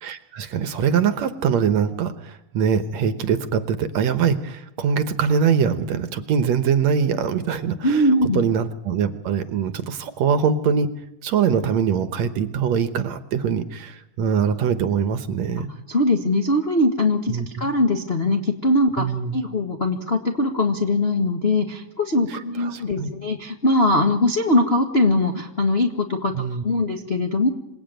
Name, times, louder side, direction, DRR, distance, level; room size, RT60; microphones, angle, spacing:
voice 1, 0.0-8.0 8.3-10.9 11.2-15.7 17.3-17.7 19.0-19.4 22.3-23.1 26.3-26.6, right 7 dB, 65° right, 11 dB, 2.1 m, -23 dB
voice 2, 7.8-8.4 15.9-19.0 19.3-26.3 26.6-27.5, left 2 dB, 40° left, 3 dB, 0.9 m, -21 dB
27.0 x 17.5 x 9.1 m, 0.90 s
omnidirectional pair, 3.7 m